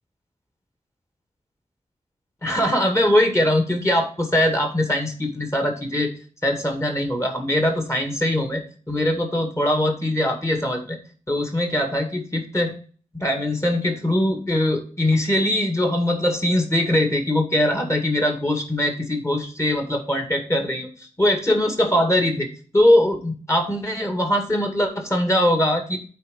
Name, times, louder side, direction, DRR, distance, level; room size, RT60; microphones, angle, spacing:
voice 1, 2.4-6.1 6.4-11.0 11.3-12.7 13.1-22.5 22.7-26.0, left 1 dB, 20° left, 4 dB, 2.0 m, -21 dB
8.5 x 4.3 x 5.2 m, 0.40 s
wide cardioid pair, 70°, 13 cm